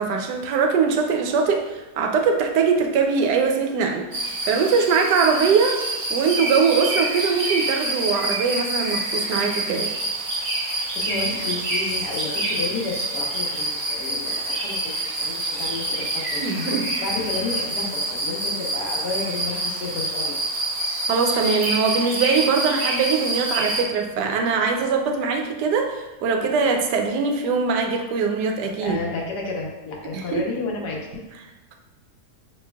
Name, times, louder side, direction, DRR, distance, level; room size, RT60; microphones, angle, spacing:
voice 1, 0.0-5.8 6.1-9.9 16.4-16.9 21.1-29.0 30.1-30.4, right 5 dB, 85° right, 3 dB, 1.2 m, -22 dB
sound 1, 4.1-23.8, right 1 dB, 45° right, 0.9 m, -27 dB
voice 2, 10.7-20.4 28.8-31.2, left 4 dB, 80° left, -2 dB, 1.4 m, -31 dB
5.7 x 3.1 x 2.2 m, 1.1 s
omnidirectional pair, 1.7 m